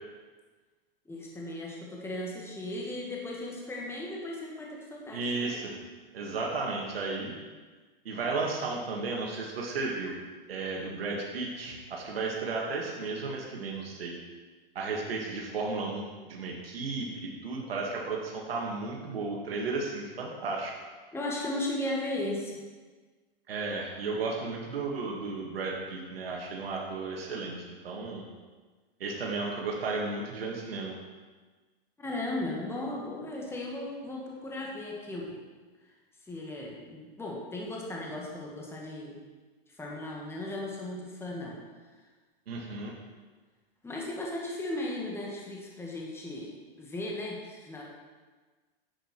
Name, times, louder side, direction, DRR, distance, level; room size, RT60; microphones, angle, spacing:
voice 1, 1.1-5.6 21.1-22.6 32.0-35.4 36.2-39.2 39.8-41.6 43.8-47.8, left 1 dB, 10° left, -3 dB, 1.9 m, -36 dB
voice 2, 5.1-5.7 6.1-7.3 8.1-10.1 10.5-14.1 14.8-16.0 16.3-20.7 23.5-28.2 29.0-30.9 42.5-42.9, right 3 dB, 90° right, -1 dB, 1.9 m, -34 dB
10.0 x 7.9 x 4.5 m, 1.4 s
hypercardioid pair, 130°, 29 cm